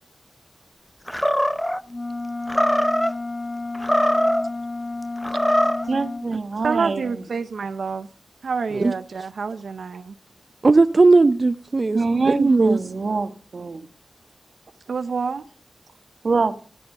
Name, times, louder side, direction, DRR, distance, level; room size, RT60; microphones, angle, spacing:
Animal, 1.1-1.8 2.5-3.1 3.7-4.5 5.2-5.9, equal, 5° left, 0.7 m, -21 dB
sound 1, 1.9-6.3, left 2 dB, 25° left, 1.4 m, -31 dB
voice 1, 5.9-7.2 11.9-13.9 16.2-16.5, right 4 dB, 65° right, 10 dB, 1.2 m, -24 dB
voice 2, 6.6-8.1 8.4-10.2 14.9-15.4, right 5 dB, 85° right, 9 dB, 0.7 m, -27 dB
voice 3, 10.6-12.8, right 3 dB, 50° right, 11 dB, 0.6 m, -17 dB
18.0 x 8.6 x 6.5 m, 0.42 s
cardioid pair, 60°, 0 cm